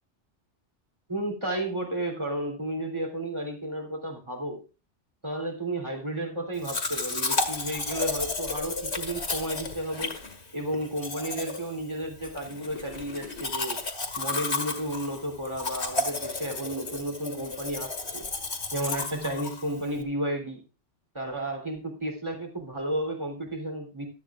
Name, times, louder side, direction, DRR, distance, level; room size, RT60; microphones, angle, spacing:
voice 1, 1.1-4.6 5.2-10.2 10.5-13.8 14.2-18.3 18.7-20.6 21.1-24.1, right 1 dB, 25° right, 1 dB, 3.4 m, -32 dB
Domestic sounds home sounds, 6.6-20.0, left 3 dB, 65° left, 2.3 m, -33 dB
15.5 x 12.5 x 2.5 m, 0.32 s
omnidirectional pair, 1.2 m